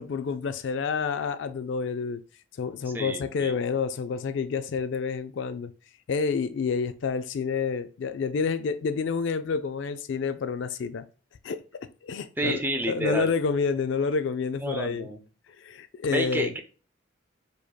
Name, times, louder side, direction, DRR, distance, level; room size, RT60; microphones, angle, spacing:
voice 1, 0.0-2.2 2.6-5.7 6.1-11.0 11.4-11.6 12.0-15.1 15.6-16.5, left 5 dB, 65° left, 0.3 m, -29 dB
voice 2, 2.9-3.5 12.4-13.3 14.6-15.2 16.1-16.6, right 1 dB, 10° right, 0.4 m, -30 dB
5.0 x 4.1 x 2.3 m
head